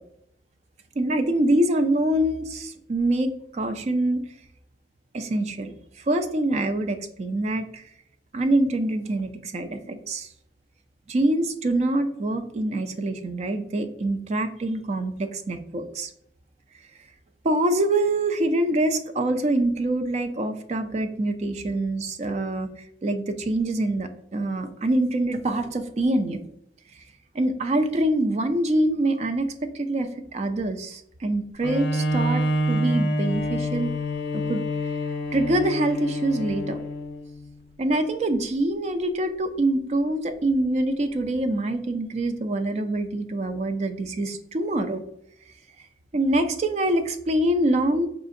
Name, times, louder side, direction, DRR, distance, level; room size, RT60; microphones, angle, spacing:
voice 1, 1.0-4.2 5.1-7.8 8.3-10.3 11.1-16.1 17.4-22.7 23.0-26.4 27.3-33.9 34.3-34.6 35.3-36.8 37.8-45.0 46.1-48.1, right 1 dB, 40° right, 7 dB, 0.4 m, -25 dB
Bowed string instrument, 31.6-37.3, equal, 70° left, 0.5 m, -27 dB
4.7 x 2.6 x 2.5 m, 0.72 s
head